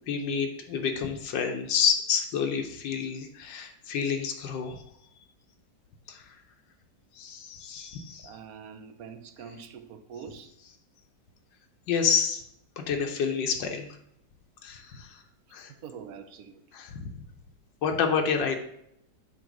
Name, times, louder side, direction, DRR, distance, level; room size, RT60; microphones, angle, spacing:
voice 1, 0.1-4.8 6.1-6.4 7.2-8.3 11.9-12.4 12.8-14.0 14.6-15.2 15.5-15.7 16.7-17.2 17.8-18.6, left 6 dB, 85° left, 4 dB, 1.5 m, -29 dB
voice 2, 8.2-10.5 15.8-16.6, right 6 dB, 65° right, 8 dB, 1.0 m, -44 dB
7.9 x 3.0 x 6.1 m, 0.75 s
omnidirectional pair, 1.9 m